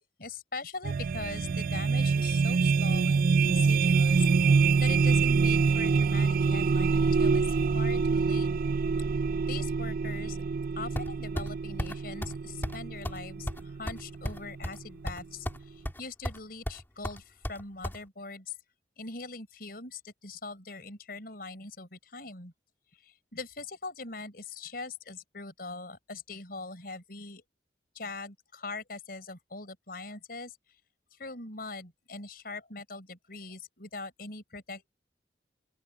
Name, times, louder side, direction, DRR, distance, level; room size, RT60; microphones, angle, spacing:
voice 1, 0.2-4.3 4.8-8.5 9.5-10.4 10.8-18.5 19.0-22.5 22.9-27.4 27.9-30.6 31.1-34.9, left 3 dB, 55° left, 5.6 m, -42 dB
sound 1, 0.8-14.9, right 4 dB, 55° right, 0.3 m, -26 dB
sound 2, 11.0-11.5 11.8-11.9 12.2-12.4 12.6-12.8 13.0-13.2 13.5-14.8 15.1-15.6 15.8-16.4 16.7-18.0, equal, 15° left, 3.1 m, -34 dB
open air
head